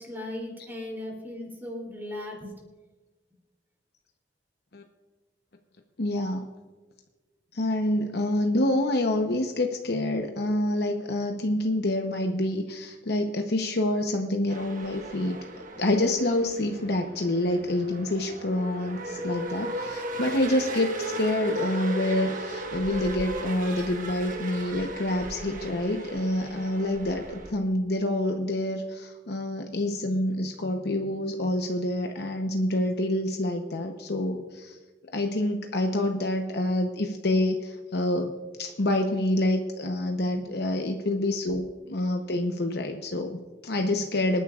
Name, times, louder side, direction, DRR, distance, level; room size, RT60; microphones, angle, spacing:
voice 1, 0.0-2.5 40.3-40.5, left 1 dB, 10° right, -1 dB, 3.0 m, -37 dB
voice 2, 6.0-6.4 7.5-15.4 15.8-34.8 35.1-38.3 38.6-44.4, left 1 dB, 65° left, 4 dB, 0.9 m, -27 dB
sound 1, 14.5-27.5, right 1 dB, 50° right, 1.4 m, -36 dB
26.5 x 9.8 x 2.4 m, 1.3 s
head